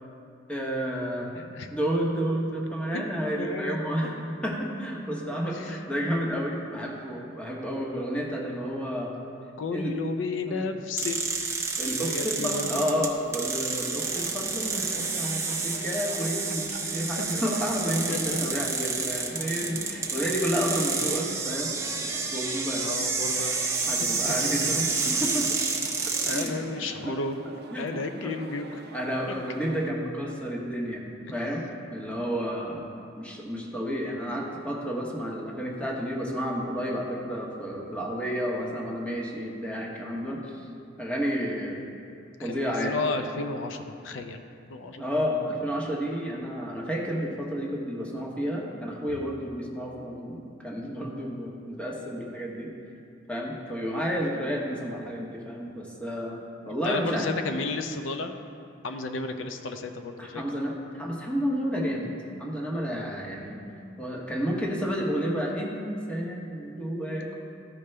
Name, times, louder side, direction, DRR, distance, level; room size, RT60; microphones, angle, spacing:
voice 1, 0.5-1.3 1.7-4.1 4.4-9.1 9.7-10.0 10.4-10.7 11.8-16.7 16.9-21.7 22.0-22.8 23.9-25.5 26.3-27.2 27.7-27.9 28.2-28.3 28.9-31.0 31.3-32.9 33.2-40.6 41.0-41.8 42.4-43.0 45.0-52.7 53.3-56.4 56.7-57.3 60.2-62.1 62.4-63.6 64.0-67.4, equal, 5° left, -2 dB, 1.0 m, -31 dB
voice 2, 1.3-1.7 2.9-3.1 3.4-3.8 5.5-5.8 9.6-11.3 12.0-13.1 16.7-16.9 18.1-18.2 22.7-23.6 24.0-24.4 26.3-27.5 27.8-28.8 29.3-29.4 42.4-44.4 44.7-45.1 56.8-58.3 58.8-60.4, left 3 dB, 90° left, 7 dB, 0.5 m, -33 dB
sound 1, 11.0-26.5, right 4 dB, 15° right, 0.7 m, -29 dB
sound 2, 14.0-29.9, right 3 dB, 60° right, 0.5 m, -44 dB
14.0 x 5.1 x 3.3 m, 2.5 s
head